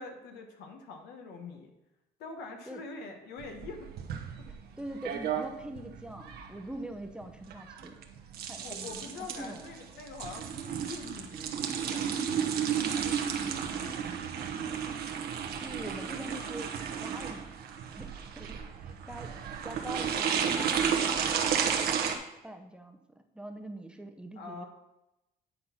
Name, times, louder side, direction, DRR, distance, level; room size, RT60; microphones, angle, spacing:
voice 1, 0.0-1.7 2.2-3.9 4.4-4.5 8.6-14.2 24.4-24.7, left 3 dB, 85° left, 4 dB, 1.2 m, -45 dB
sound 1, 3.4-22.1, right 7 dB, 70° right, 1.0 m, -33 dB
voice 2, 4.8-8.0 8.5-9.7 15.6-16.7 17.0-17.5 18.0-18.6 19.1-19.4 19.6-21.8 22.4-23.0 23.3-24.6, right 1 dB, 5° right, 5 dB, 0.7 m, -43 dB
9.7 x 4.2 x 5.7 m, 0.94 s
cardioid pair, 110°, 17 cm